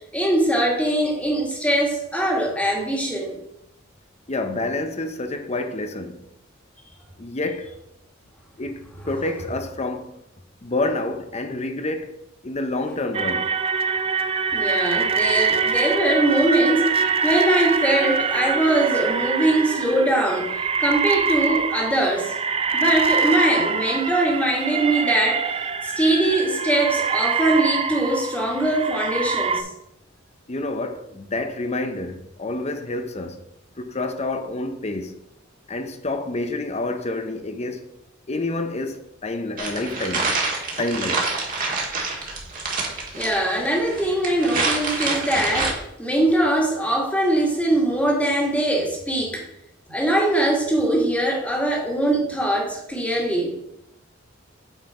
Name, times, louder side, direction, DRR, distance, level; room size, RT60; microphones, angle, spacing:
voice 1, 0.1-3.4 14.5-22.4 22.7-25.5 25.8-29.7 43.2-49.4 49.9-53.5, right 1 dB, 5° left, 1.8 m, -22 dB
voice 2, 4.3-6.3 7.2-7.7 8.6-8.8 9.1-10.2 10.6-12.2 12.4-13.6 30.5-33.4 33.8-35.1 35.7-37.9 38.3-40.4 40.8-41.3, left 2 dB, 35° left, 0.7 m, -28 dB
sound 1, 13.1-29.6, right 5 dB, 30° right, 0.4 m, -24 dB
sound 2, 39.6-45.7, right 3 dB, 45° right, 1.7 m, -26 dB
7.9 x 4.4 x 4.8 m
head